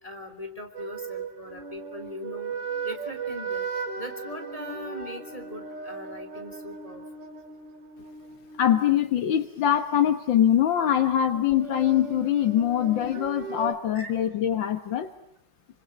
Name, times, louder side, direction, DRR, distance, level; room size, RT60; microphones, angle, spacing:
voice 1, 0.0-2.6 2.8-3.7 4.0-7.3 12.7-12.8 13.9-14.1, left 1 dB, 20° left, 5 dB, 3.5 m, -40 dB
sound 1, 0.7-9.8 11.3-13.7, right 5 dB, 75° right, 4.1 m, -37 dB
voice 2, 8.6-15.1, left 10 dB, 85° left, 8 dB, 2.0 m, -23 dB
28.0 x 26.0 x 8.0 m, 0.77 s
omnidirectional pair, 2.0 m